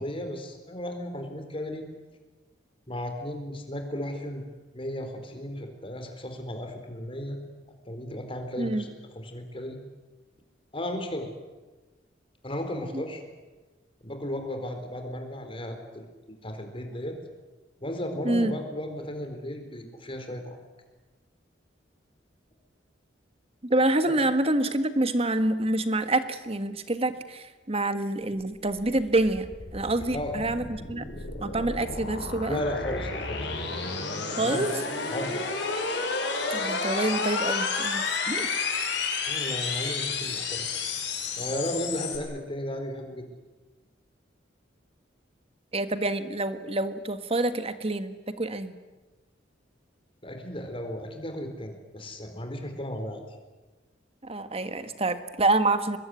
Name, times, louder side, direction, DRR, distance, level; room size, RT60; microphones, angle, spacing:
voice 1, 0.0-1.8 2.9-4.4 4.7-7.4 7.9-9.8 10.7-11.3 12.4-13.2 14.0-16.0 16.4-17.2 17.8-20.6 24.1-24.2 30.1-30.3 32.5-33.4 34.4-34.7 35.1-35.5 39.3-40.9 41.4-43.3 50.2-53.2, left 1 dB, 30° left, 5 dB, 4.3 m, -34 dB
voice 2, 23.6-31.1 31.4-32.6 34.4-34.7 36.5-38.5 45.7-48.8 54.2-56.0, right 2 dB, 30° right, 10 dB, 1.7 m, -27 dB
sound 1, 28.5-42.2, left 4 dB, 65° left, 6.1 m, -31 dB
24.0 x 21.5 x 9.7 m, 1.2 s
head